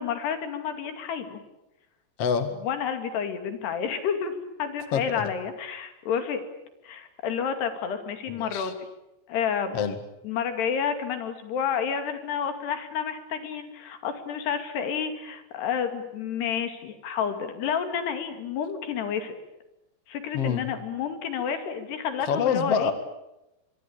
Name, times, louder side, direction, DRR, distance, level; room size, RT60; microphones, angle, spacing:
voice 1, 0.0-1.4 2.6-6.4 6.8-8.8 9.3-9.8 10.2-19.4 20.1-22.9, left 7 dB, 70° left, 8 dB, 4.3 m, -30 dB
voice 2, 2.2-2.5 4.9-5.3 8.3-8.7 9.7-10.0 20.3-20.6 22.2-22.9, left 7 dB, 45° left, 10 dB, 2.2 m, -26 dB
24.5 x 24.5 x 8.6 m, 0.92 s
omnidirectional pair, 5.1 m